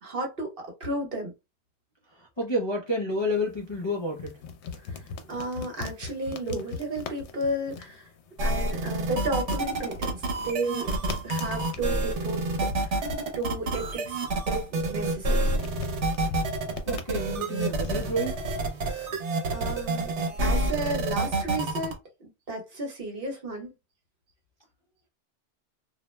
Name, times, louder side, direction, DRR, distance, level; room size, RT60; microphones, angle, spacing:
voice 1, 0.0-1.3 4.8-5.0 5.3-8.1 8.4-13.1 13.4-15.5 19.5-21.9 22.2-23.7, right 2 dB, 55° right, 1.1 m, -33 dB
voice 2, 2.1-4.4 16.9-18.4, left 1 dB, 35° left, 0.5 m, -30 dB
sound 1, 3.1-21.3, left 5 dB, 75° left, 0.8 m, -43 dB
sound 2, 8.4-21.9, right 2 dB, 75° right, 1.1 m, -28 dB
2.4 x 2.0 x 3.1 m
omnidirectional pair, 1.2 m